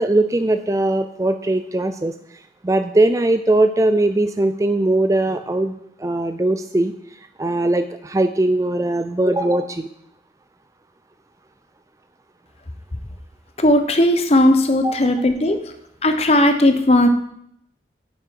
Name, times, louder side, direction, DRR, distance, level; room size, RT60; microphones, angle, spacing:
voice 1, 0.0-2.1 2.6-6.9 7.4-9.9 14.8-14.9 15.5-15.6, right 2 dB, 20° right, 9 dB, 0.4 m, -20 dB
voice 2, 13.6-15.6 16.0-17.1, left 1 dB, 35° left, 7 dB, 0.9 m, -16 dB
9.4 x 8.8 x 4.7 m, 0.73 s
head